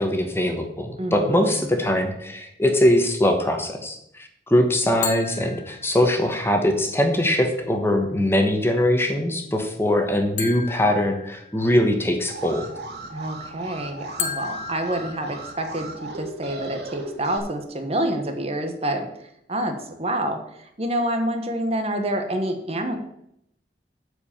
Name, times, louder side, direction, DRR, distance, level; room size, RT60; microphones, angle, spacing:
voice 1, 0.0-12.7, left 1 dB, 15° left, 4 dB, 1.2 m, -22 dB
voice 2, 1.0-1.6 13.1-19.1 19.5-23.0, right 1 dB, 35° right, 6 dB, 1.2 m, -27 dB
sound 1, 5.0-6.3 10.4-11.9 14.2-15.9, left 7 dB, 45° left, 1.3 m, -34 dB
Alarm, 12.3-17.4, right 2 dB, 70° right, 1.6 m, -36 dB
9.6 x 4.9 x 7.2 m, 0.75 s
head